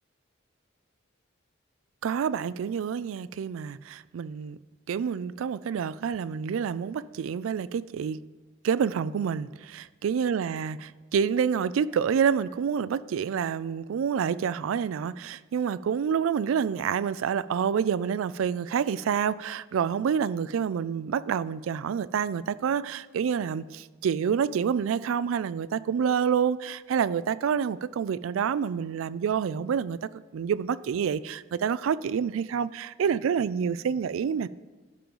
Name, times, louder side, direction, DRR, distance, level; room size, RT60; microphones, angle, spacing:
voice 1, 2.0-4.6 4.9-8.2 8.6-34.5, right 7 dB, 85° right, 0.3 m, -28 dB
11.5 x 3.9 x 7.2 m
head